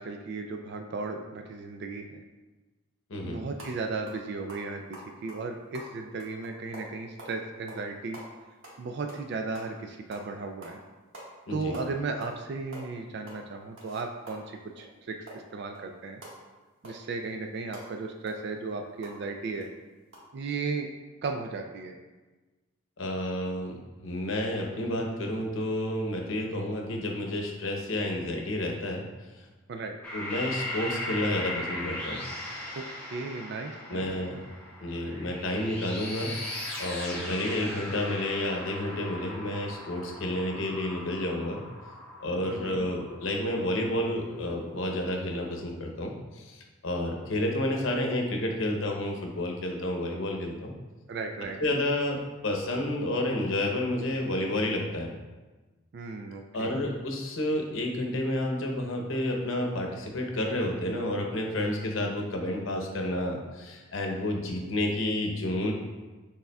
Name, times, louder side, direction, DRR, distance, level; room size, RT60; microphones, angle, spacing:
voice 1, 0.0-2.2 3.2-8.2 8.8-10.8 11.5-16.2 16.8-19.7 20.3-20.9 21.2-22.0 29.7-30.0 32.7-32.9 33.1-34.1 42.5-42.8 51.1-51.6 55.9-56.8, right 3 dB, 55° right, 4 dB, 0.3 m, -35 dB
voice 2, 3.1-3.4 11.5-11.8 23.0-23.7 24.0-29.0 30.1-32.2 33.9-34.4 34.8-36.3 36.8-41.6 42.2-46.6 46.8-50.7 51.6-55.1 56.5-65.7, left 1 dB, 75° left, 1 dB, 0.8 m, -30 dB
sound 1, 3.5-3.7 4.1-4.2 4.5-7.3 7.7-7.9 8.1-9.8 10.1-10.3 10.6-10.8 11.1-11.3 11.5-12.4 12.6-14.9 15.3-19.2 19.6-19.7 20.1-20.2, right 1 dB, 75° right, 1.4 m, -46 dB
sound 2, 30.0-45.6, left 1 dB, 10° left, 0.8 m, -39 dB
6.6 x 3.5 x 2.2 m, 1.2 s
head